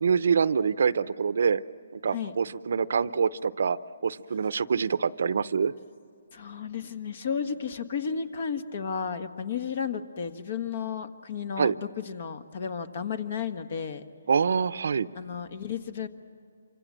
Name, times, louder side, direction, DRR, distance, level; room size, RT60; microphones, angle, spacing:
voice 1, 0.0-1.6 1.9-3.8 4.0-5.7 11.6-11.7 14.3-15.1, right 6 dB, 65° right, 16 dB, 0.7 m, -25 dB
voice 2, 6.3-14.0 15.1-16.1, left 6 dB, 50° left, 10 dB, 1.5 m, -33 dB
28.0 x 25.0 x 7.6 m, 2.3 s
hypercardioid pair, 160°, 0 cm